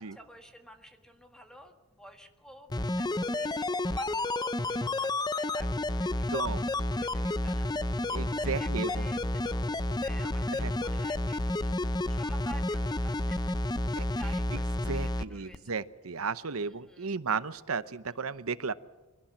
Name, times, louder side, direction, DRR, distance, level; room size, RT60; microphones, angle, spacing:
voice 1, 0.0-6.6 6.9-7.7 8.4-9.7 10.0-11.7 12.1-13.5 14.1-15.8 16.5-17.1, equal, 5° left, 5 dB, 1.6 m, -51 dB
sound 1, 2.7-15.2 15.5-15.6, left 2 dB, 20° left, 0.6 m, -30 dB
voice 2, 6.3-6.6 8.1-8.9 10.6-10.7 14.0-14.1 14.9-18.7, right 5 dB, 75° right, 15 dB, 0.8 m, -34 dB
24.0 x 17.5 x 7.5 m, 1.1 s
head